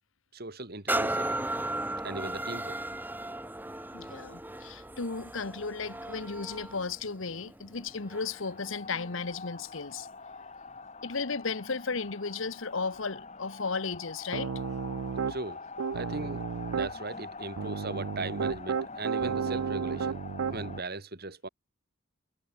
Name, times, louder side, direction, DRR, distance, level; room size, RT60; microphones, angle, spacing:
voice 1, 0.3-1.4 2.0-2.8 15.3-15.7 15.9-16.5 16.7-20.2 20.5-21.5, right 2 dB, 45° right, 2.8 m, -38 dB
sound 1, 0.9-8.5 9.1-9.2, right 1 dB, 10° right, 4.1 m, -36 dB
voice 2, 3.9-10.1 11.0-14.6, left 4 dB, 65° left, 1.2 m, -35 dB
sound 2, 7.8-20.8, left 4 dB, 30° left, 3.8 m, -45 dB
Piano, 14.3-15.4 15.8-16.9 17.6-20.8, right 6 dB, 85° right, 0.5 m, -32 dB
head